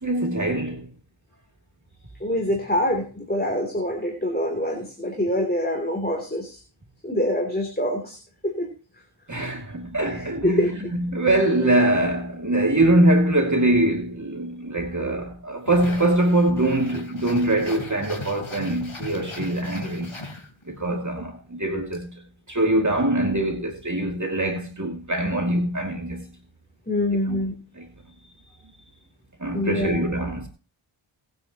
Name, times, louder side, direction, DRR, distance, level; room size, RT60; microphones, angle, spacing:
voice 1, 0.0-0.9 9.3-20.1 20.7-22.1 22.5-26.2 27.3-27.4 27.8-27.9 29.4-30.5, right 1 dB, 35° right, 2.5 m, -23 dB
voice 2, 2.2-6.6 7.0-8.2 8.4-8.7 10.1-10.7 21.2-21.3 26.9-27.6 29.5-30.1, left 1 dB, 20° left, 3.2 m, -25 dB
sound 1, 15.7-20.9, left 3 dB, 75° left, 3.6 m, -38 dB
19.5 x 9.4 x 3.0 m
wide cardioid pair, 45°, 49 cm